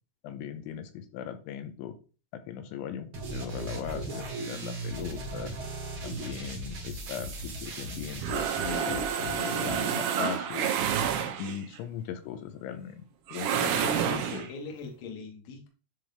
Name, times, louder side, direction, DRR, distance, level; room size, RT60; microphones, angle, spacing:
voice 1, 0.2-2.0 2.3-5.5 6.0-10.7 11.4-13.8 14.1-14.5, left 9 dB, 85° left, 9 dB, 3.0 m, -38 dB
sound 1, 3.1-9.9, right 2 dB, 60° right, 1.4 m, -38 dB
sound 2, 6.9-11.7 13.3-14.5, right 8 dB, 80° right, 2.6 m, -30 dB
voice 2, 13.8-15.7, left 4 dB, 60° left, 2 dB, 1.9 m, -40 dB
10.0 x 3.4 x 3.5 m, 0.36 s
omnidirectional pair, 5.4 m